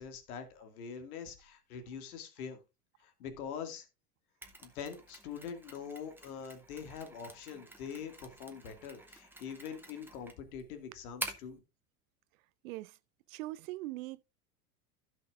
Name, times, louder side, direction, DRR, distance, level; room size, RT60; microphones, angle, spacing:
voice 1, 0.0-2.6 3.0-3.9 4.6-11.6, left 7 dB, 70° left, 2.4 m, -44 dB
Mechanisms, 4.4-11.6, right 2 dB, 5° right, 2.0 m, -48 dB
voice 2, 12.6-13.0 13.3-14.2, right 18 dB, 65° right, 0.5 m, -41 dB
15.5 x 6.4 x 2.5 m
hypercardioid pair, 85°, 45 cm